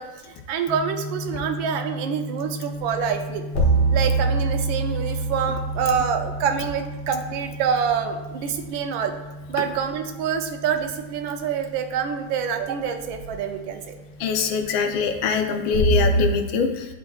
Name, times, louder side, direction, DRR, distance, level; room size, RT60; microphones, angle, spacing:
voice 1, 0.0-3.4 3.9-9.1 9.5-13.9, right 7 dB, 90° right, 6 dB, 1.4 m, -26 dB
sound 1, 0.7-16.3, equal, 5° right, 0.6 m, -38 dB
sound 2, 3.5-8.0 13.1-13.3 15.7-16.3, right 3 dB, 60° left, 1.8 m, -24 dB
voice 2, 14.2-16.9, left 6 dB, 80° left, 5 dB, 1.5 m, -23 dB
11.0 x 4.3 x 2.4 m, 1.2 s
omnidirectional pair, 2.2 m